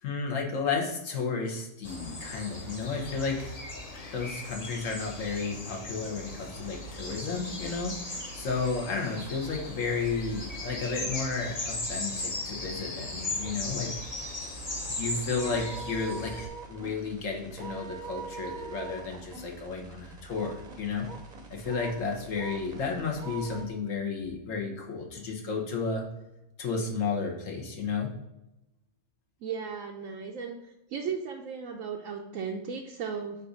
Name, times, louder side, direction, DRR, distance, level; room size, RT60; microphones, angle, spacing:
voice 1, 0.0-3.8 4.1-8.0 8.3-13.9 14.8-16.3 16.6-21.1 21.5-26.0 26.6-28.1, left 4 dB, 65° left, 1 dB, 1.4 m, -32 dB
sound 1, 1.8-16.5, left 2 dB, 30° left, 0.9 m, -38 dB
sound 2, 6.5-23.7, right 5 dB, 35° right, 0.8 m, -46 dB
voice 2, 29.4-30.6 30.9-33.4, right 6 dB, 70° right, 2 dB, 0.9 m, -35 dB
7.5 x 2.7 x 5.0 m, 0.93 s
omnidirectional pair, 1.5 m